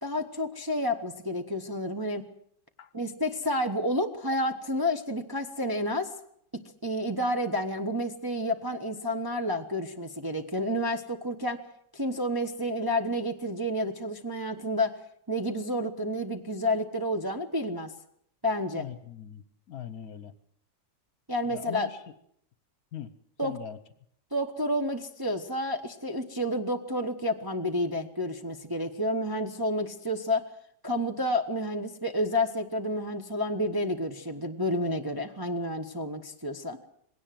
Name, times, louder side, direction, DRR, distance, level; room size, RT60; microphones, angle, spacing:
voice 1, 0.0-2.2 2.9-6.1 6.8-11.6 11.9-15.0 15.3-17.9 18.4-18.9 21.3-21.9 23.4-23.5 24.3-30.5 30.8-36.8, left 1 dB, 15° right, 3 dB, 0.9 m, -30 dB
voice 2, 18.7-20.3 21.4-22.0 22.9-23.8, left 8 dB, 60° left, 13 dB, 1.3 m, -41 dB
20.0 x 17.5 x 7.6 m, 0.68 s
omnidirectional pair, 1.9 m